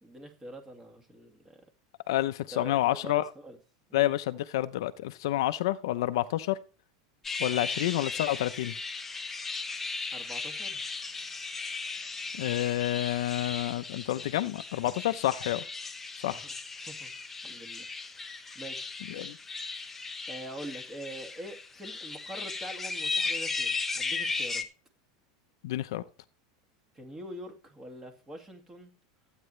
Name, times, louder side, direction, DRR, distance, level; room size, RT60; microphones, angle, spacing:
voice 1, 0.0-1.6 2.5-3.6 3.9-4.2 10.1-10.8 14.8-14.9 16.3-16.6 16.8-17.1 17.4-18.9 20.3-24.6 26.9-28.9, right 1 dB, 15° right, 2.3 m, -44 dB
voice 2, 2.1-3.2 3.9-6.6 7.4-8.7 12.4-15.6 16.2-16.4 19.1-19.4 25.6-26.0, left 14 dB, 75° left, 0.7 m, -29 dB
sound 1, 7.2-24.6, left 4 dB, 10° left, 0.8 m, -36 dB
14.0 x 9.1 x 3.3 m
supercardioid pair, 155°, 2 cm